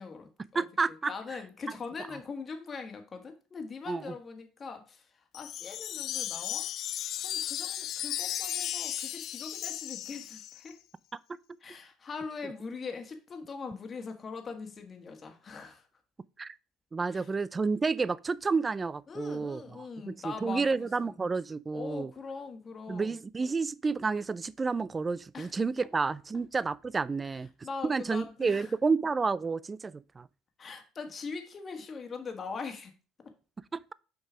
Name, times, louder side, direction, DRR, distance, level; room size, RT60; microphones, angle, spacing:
voice 1, 0.0-0.7 1.1-6.7 7.2-10.8 11.6-15.9 17.1-17.3 19.1-21.1 21.7-23.2 25.3-25.5 27.2-28.7 30.6-32.9, left 4 dB, 35° left, 1.5 m, -42 dB
voice 2, 0.5-1.1 3.9-4.1 16.4-16.6 16.9-19.6 20.1-22.1 22.9-27.5 27.8-30.3 33.7-33.9, right 4 dB, 25° right, 0.4 m, -30 dB
Wind chime, 5.3-10.7, left 11 dB, 60° left, 0.5 m, -35 dB
6.7 x 4.4 x 5.0 m
supercardioid pair, 95°, 0 cm